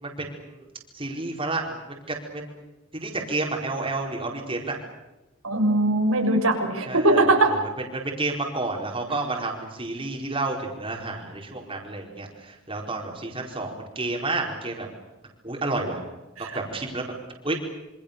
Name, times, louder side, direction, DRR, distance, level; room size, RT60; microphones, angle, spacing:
voice 1, 0.0-0.6 0.9-2.6 2.9-4.8 6.9-7.6 7.9-14.9 15.4-16.0 16.4-17.1 17.4-17.6, right 2 dB, 25° right, 0 dB, 4.6 m, -30 dB
voice 2, 5.4-7.5 16.4-16.5, right 2 dB, 85° right, 2 dB, 6.8 m, -21 dB
27.5 x 26.0 x 6.8 m, 1.0 s
head